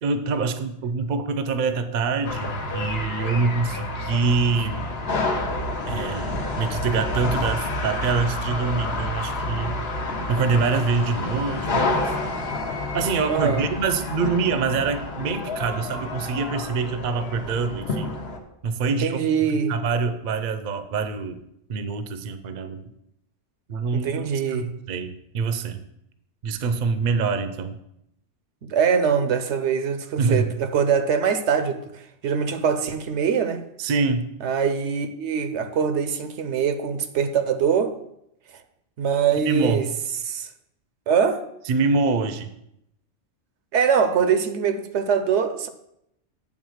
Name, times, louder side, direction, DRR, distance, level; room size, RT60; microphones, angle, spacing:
voice 1, 0.0-4.9 5.9-9.8 10.3-12.1 12.9-18.1 18.6-19.3 19.7-21.4 21.7-22.9 23.7-25.8 26.4-27.8 30.2-30.5 33.8-34.3 39.4-39.8 41.7-42.5, right 4 dB, 55° right, 0.7 m, -25 dB
sound 1, 2.2-18.4, left 2 dB, 60° left, 1.1 m, -29 dB
voice 2, 13.3-13.6 18.9-19.7 23.9-24.7 28.6-33.6 34.4-37.9 39.0-39.9 40.2-40.5 41.1-41.4 43.7-45.7, right 6 dB, 75° right, 0.9 m, -23 dB
8.6 x 3.6 x 6.3 m
omnidirectional pair, 1.2 m